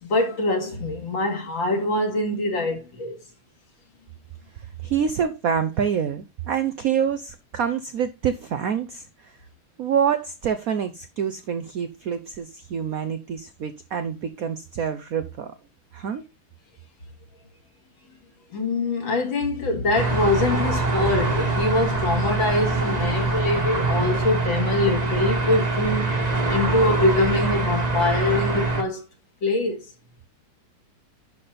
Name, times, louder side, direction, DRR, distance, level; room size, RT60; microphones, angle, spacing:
voice 1, 0.0-3.2 18.5-26.2 26.5-29.0 29.4-29.8, left 2 dB, 60° left, 3.0 m, -24 dB
voice 2, 4.8-9.4 9.8-15.5 15.9-16.2, right 7 dB, 70° right, 0.8 m, -26 dB
sound 1, 19.9-28.8, right 3 dB, 20° right, 1.4 m, -24 dB
11.5 x 4.3 x 5.1 m
omnidirectional pair, 2.4 m